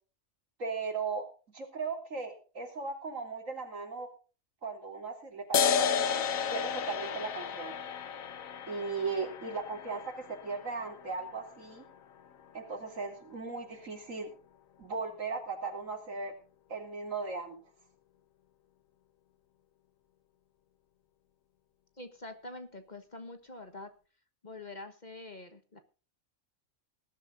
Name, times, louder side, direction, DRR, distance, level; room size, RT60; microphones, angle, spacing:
voice 1, 0.6-4.1 4.6-6.2 6.5-7.8 8.7-11.9 12.5-14.3 14.8-16.3 16.7-17.6, right 4 dB, 70° right, 4 dB, 3.5 m, -37 dB
sound 1, 5.5-12.5, left 7 dB, 80° left, 1.4 m, -33 dB
voice 2, 22.0-23.9 24.4-25.8, left 2 dB, 35° left, 8 dB, 1.3 m, -45 dB
20.0 x 12.0 x 2.6 m, 0.36 s
omnidirectional pair, 1.4 m